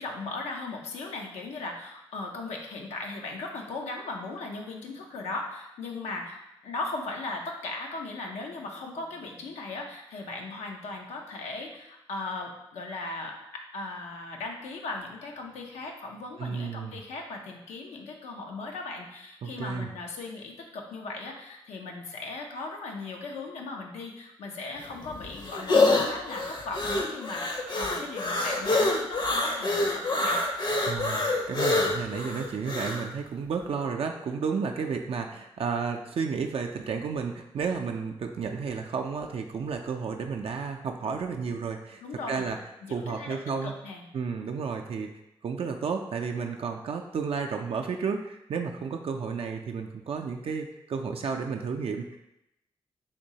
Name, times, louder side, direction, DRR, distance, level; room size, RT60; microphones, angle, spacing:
voice 1, 0.0-30.4 42.0-44.0, left 3 dB, 90° left, 1 dB, 0.5 m, -38 dB
voice 2, 16.4-17.0 19.4-19.9 30.9-42.0 42.3-42.6 42.9-43.7 44.1-45.1 45.4-52.2, right 5 dB, 60° right, 3 dB, 0.4 m, -32 dB
sound 1, 24.8-33.1, left 2 dB, 45° left, 0.6 m, -26 dB
3.6 x 3.0 x 2.7 m, 0.86 s
supercardioid pair, 40°, 11 cm